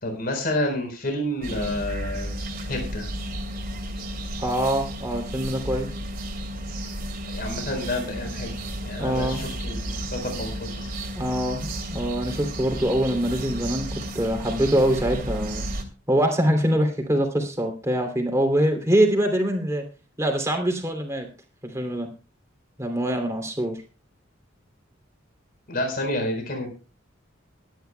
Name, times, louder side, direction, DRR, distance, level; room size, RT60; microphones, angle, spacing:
voice 1, 0.0-2.4 2.7-3.1 7.3-8.6 8.8-10.9 25.7-26.7, left 1 dB, 50° left, 3 dB, 4.4 m, -29 dB
sound 1, 1.4-15.8, right 1 dB, 50° right, 2.6 m, -33 dB
voice 2, 4.4-5.9 9.0-9.4 11.1-15.7 16.1-19.8 20.2-21.3 21.6-22.1 22.8-23.8, right 1 dB, 15° right, 3 dB, 2.9 m, -24 dB
22.0 x 10.5 x 2.2 m, 0.32 s
head